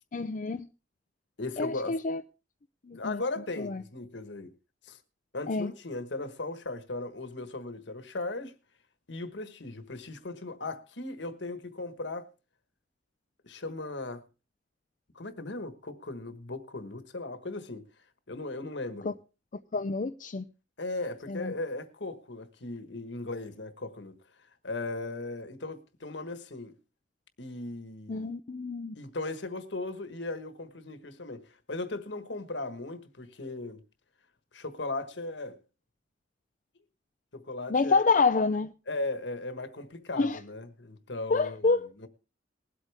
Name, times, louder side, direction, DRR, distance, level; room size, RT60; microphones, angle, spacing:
voice 1, 0.1-0.7 1.6-2.2 2.9-3.2 3.6-3.8 5.5-5.7 19.7-20.4 21.3-21.5 28.1-28.9 37.7-38.7 40.2-40.4 41.3-41.9, left 4 dB, 45° left, 0.5 m, -27 dB
voice 2, 1.4-2.0 2.9-4.5 4.8-5.0 5.3-8.6 9.1-12.3 13.4-14.2 15.1-17.9 18.3-19.1 20.8-26.8 27.4-28.3 28.9-33.8 34.5-35.6 37.3-38.0 38.9-42.1, left 2 dB, 70° left, 1.4 m, -37 dB
20.5 x 8.2 x 3.5 m
head